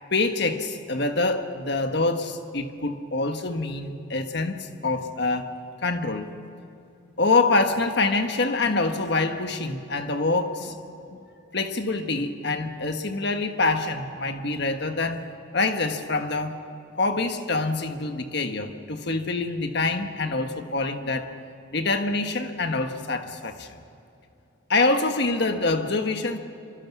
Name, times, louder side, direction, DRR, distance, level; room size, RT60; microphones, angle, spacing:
voice 1, 0.1-5.5 5.8-6.3 7.2-10.8 11.1-11.2 11.5-15.2 15.5-16.6 17.0-21.3 21.7-23.7 24.7-26.4, left 3 dB, 55° left, 6 dB, 1.4 m, -25 dB
26.5 x 25.0 x 6.1 m, 2.7 s
head